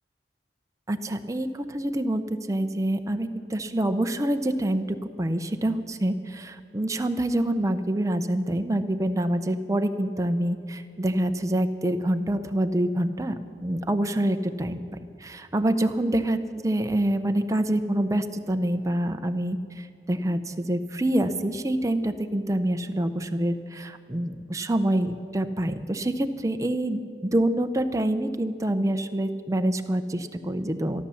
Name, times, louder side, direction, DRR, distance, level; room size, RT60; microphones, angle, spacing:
voice 1, 0.9-2.2 2.5-14.8 15.2-16.4 16.6-31.0, right 1 dB, 20° right, 8 dB, 0.6 m, -26 dB
12.5 x 12.5 x 7.1 m, 2.4 s
head